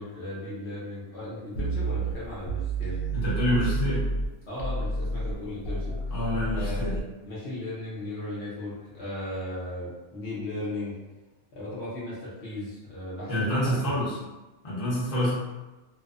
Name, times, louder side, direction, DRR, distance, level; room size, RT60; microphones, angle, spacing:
voice 1, 0.0-3.0 4.5-5.9 6.5-11.0 11.5-14.0, left 1 dB, 60° left, -9 dB, 1.0 m, -36 dB
sound 1, 1.5-4.3 4.6-7.0, right 2 dB, 85° left, 1.0 m, -30 dB
voice 2, 3.1-4.0 6.1-7.0 13.3-14.2 14.6-15.3, equal, 30° left, -8 dB, 0.8 m, -27 dB
2.6 x 2.1 x 2.5 m, 1.1 s
omnidirectional pair, 1.4 m